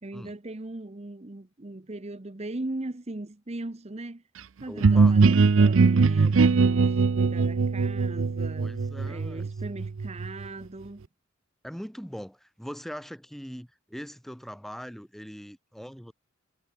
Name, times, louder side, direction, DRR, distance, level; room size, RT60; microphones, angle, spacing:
voice 1, 0.0-4.2 4.6-8.7 9.0-11.0, right 2 dB, 35° right, 0.9 m, -39 dB
voice 2, 4.6-5.1 8.6-9.5 11.6-16.1, equal, ahead, 2.0 m, -41 dB
sound 1, 4.8-10.5, right 4 dB, 85° right, 0.6 m, -21 dB
head